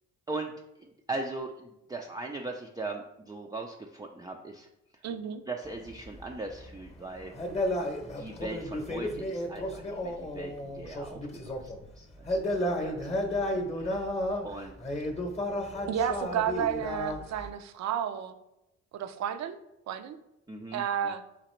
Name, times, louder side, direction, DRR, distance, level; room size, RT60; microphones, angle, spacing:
voice 1, 0.8-4.7 5.5-7.3 8.2-14.1 14.4-14.8 15.7-15.9 20.5-20.8, right 2 dB, 15° right, 1 dB, 0.4 m, -40 dB
voice 2, 5.0-5.4 15.9-18.4 18.9-19.6 19.9-20.2 20.7-21.2, right 8 dB, 65° right, 9 dB, 0.5 m, -31 dB
sound 1, 5.7-11.8 12.1-17.5, left 1 dB, 20° left, 0.9 m, -33 dB
4.0 x 2.9 x 4.3 m, 0.87 s
cardioid pair, 90°, 30 cm